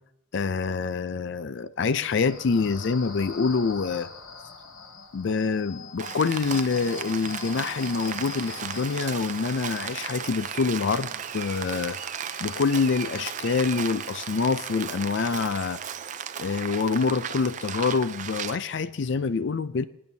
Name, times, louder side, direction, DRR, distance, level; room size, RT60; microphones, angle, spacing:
voice 1, 0.3-4.1 5.1-12.0 12.4-15.8 16.4-19.8, left 4 dB, 65° left, 14 dB, 0.4 m, -26 dB
sound 1, 1.8-15.2, left 5 dB, 85° left, 1.2 m, -44 dB
Rain, 6.0-18.6, right 8 dB, 40° right, 0.5 m, -35 dB
26.0 x 8.8 x 2.8 m, 0.84 s
head